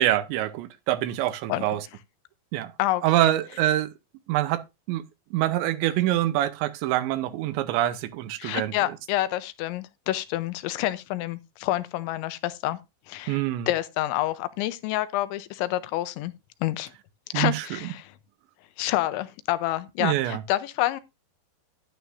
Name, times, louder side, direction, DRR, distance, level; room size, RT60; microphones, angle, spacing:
voice 1, 0.0-1.8 2.5-2.7 3.0-3.9 4.3-4.6 4.9-5.0 5.3-8.7 13.3-13.7 17.3-17.7 20.0-20.4, right 14 dB, 85° right, 3.1 m, -25 dB
voice 2, 2.8-3.3 8.4-12.8 13.1-16.3 16.6-16.9 17.3-18.1 18.8-21.0, left 15 dB, 85° left, 3.1 m, -28 dB
11.5 x 11.0 x 2.6 m
omnidirectional pair, 5.3 m